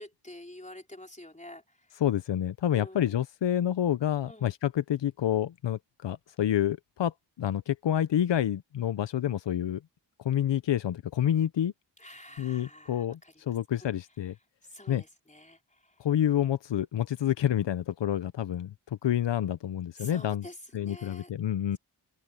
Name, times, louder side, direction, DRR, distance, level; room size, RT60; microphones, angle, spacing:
voice 1, 0.0-1.9 2.7-3.2 4.2-4.5 12.0-13.6 13.8-13.9 14.7-16.0 20.0-21.3, left 1 dB, 15° left, 4.3 m, -48 dB
voice 2, 2.0-7.1 7.4-9.8 10.2-11.7 12.4-14.3 14.9-15.0 16.0-20.5 20.7-21.8, left 10 dB, 85° left, 0.6 m, -28 dB
open air
wide cardioid pair, 100°, 42 cm